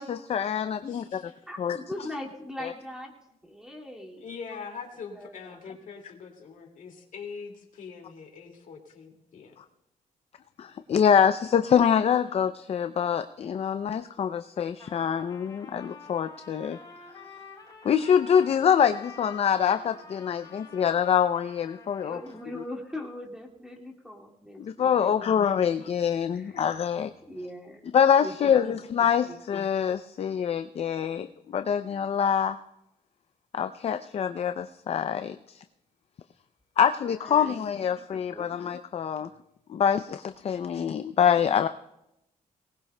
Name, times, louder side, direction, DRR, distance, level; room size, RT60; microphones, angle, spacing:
voice 1, 0.0-1.0 1.6-1.8 2.6-2.7 10.6-16.8 17.8-22.2 24.6-27.1 27.9-32.6 33.5-35.6 36.8-39.3 39.7-41.7, left 8 dB, 45° left, 10 dB, 0.4 m, -25 dB
voice 2, 0.8-1.4 2.0-2.1 4.2-9.5, left 5 dB, 70° left, 3 dB, 2.2 m, -43 dB
voice 3, 1.5-3.1 3.4-4.3 5.1-5.7 22.0-25.7 26.3-26.7 27.2-28.8 29.3-29.4 37.1-37.8 38.1-38.6, left 1 dB, 5° right, -1 dB, 2.2 m, -41 dB
Trumpet, 14.8-22.6, left 4 dB, 30° left, 4.6 m, -48 dB
22.0 x 19.0 x 2.2 m, 0.86 s
cardioid pair, 100°, 14 cm